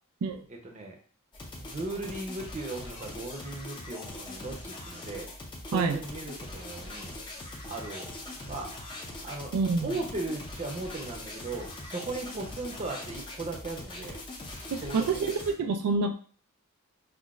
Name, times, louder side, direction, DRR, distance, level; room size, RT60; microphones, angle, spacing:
voice 1, 0.5-1.0 1.6-5.3 5.7-7.2 7.7-8.1 8.5-8.7 9.2-9.5 9.8-14.2 14.8-15.3, right 2 dB, 30° right, 1 dB, 0.7 m, -37 dB
sound 1, 1.3-15.5, left 2 dB, 20° left, 0.5 m, -42 dB
voice 2, 9.5-9.9 14.7-16.1, right 4 dB, 85° right, 6 dB, 0.4 m, -27 dB
5.8 x 2.0 x 2.4 m, 0.43 s
head